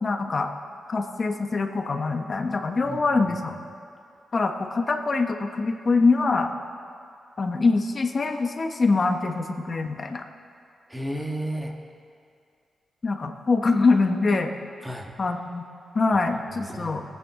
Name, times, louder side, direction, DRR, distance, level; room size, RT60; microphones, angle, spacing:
voice 1, 0.0-0.5 0.9-3.5 4.3-6.5 7.4-10.2 13.0-14.5 15.2-15.6 15.9-17.0, left 3 dB, 40° left, 4 dB, 0.9 m, -24 dB
voice 2, 2.8-3.4 10.9-11.7 14.8-15.1 16.7-17.0, right 1 dB, 5° right, 2 dB, 1.4 m, -33 dB
21.0 x 9.0 x 3.7 m, 2.3 s
cardioid pair, 95°, 0 cm